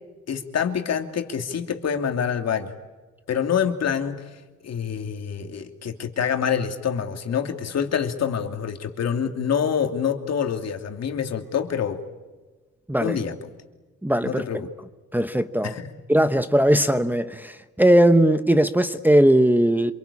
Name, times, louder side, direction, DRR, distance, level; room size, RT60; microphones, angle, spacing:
voice 1, 0.3-2.7 3.3-4.2 4.6-12.0 13.0-13.3 14.2-14.7 15.6-15.9, left 7 dB, 55° left, 2.8 m, -26 dB
voice 2, 14.0-14.5 15.1-15.7 16.1-19.9, right 1 dB, 5° right, 1.1 m, -19 dB
27.5 x 23.0 x 8.6 m
cardioid pair, 90°, 30 cm